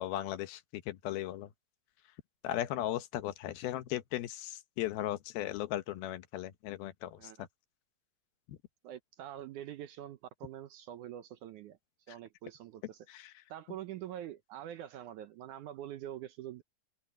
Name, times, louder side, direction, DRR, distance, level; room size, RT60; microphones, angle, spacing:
voice 1, 0.0-1.5 2.4-7.5 8.5-8.6 13.1-13.3, left 13 dB, 85° left, 3.0 m, -37 dB
voice 2, 8.8-11.8 12.1-13.1 13.5-16.6, right 11 dB, 75° right, 2.0 m, -45 dB
open air
omnidirectional pair, 4.2 m